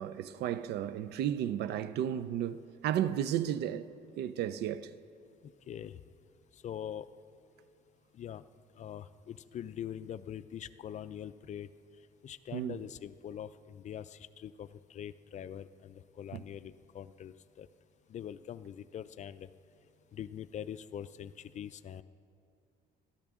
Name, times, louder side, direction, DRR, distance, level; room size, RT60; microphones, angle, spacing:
voice 1, 0.0-3.9 4.2-4.9 12.5-12.8 16.3-16.4, right 10 dB, 75° right, 0.5 m, -33 dB
voice 2, 5.4-6.0 6.6-7.1 8.1-8.4 8.8-11.7 12.2-17.7 18.1-19.5 20.1-22.0, left 9 dB, 45° left, 0.5 m, -43 dB
20.5 x 13.5 x 3.7 m
cardioid pair, 110°, 17 cm